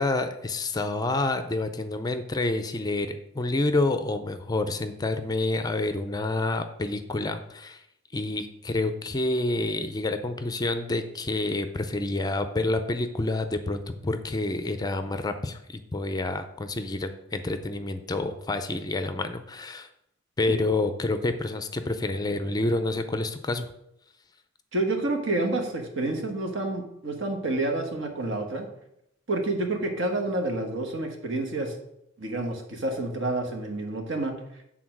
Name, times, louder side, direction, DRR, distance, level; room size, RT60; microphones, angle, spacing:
voice 1, 0.0-7.8 8.1-19.9 20.4-23.7, left 2 dB, 20° left, 9 dB, 0.4 m, -28 dB
voice 2, 24.7-28.7 29.3-31.8 32.2-34.3, right 2 dB, 65° right, 3 dB, 1.4 m, -29 dB
8.5 x 3.9 x 6.0 m, 0.79 s
head